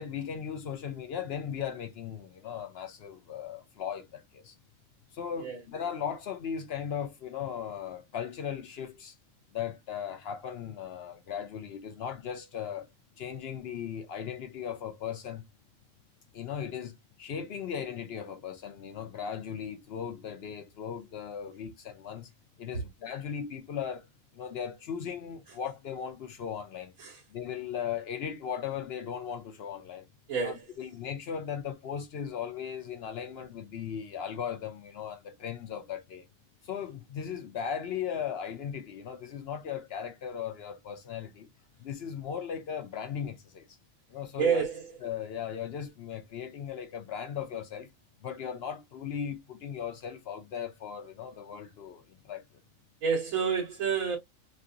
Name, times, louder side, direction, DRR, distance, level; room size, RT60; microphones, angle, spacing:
voice 1, 0.0-4.5 5.1-9.1 9.5-12.9 13.2-15.4 16.3-22.3 22.6-24.1 24.3-26.9 27.3-30.0 30.4-36.2 36.6-41.5 41.8-43.7 44.1-44.6 45.0-47.9 48.2-52.4, left 8 dB, 60° left, 0.7 m, -37 dB
voice 2, 30.3-30.7 44.4-45.0 53.0-54.2, right 6 dB, 80° right, 1.4 m, -29 dB
3.2 x 2.7 x 2.5 m
omnidirectional pair, 1.4 m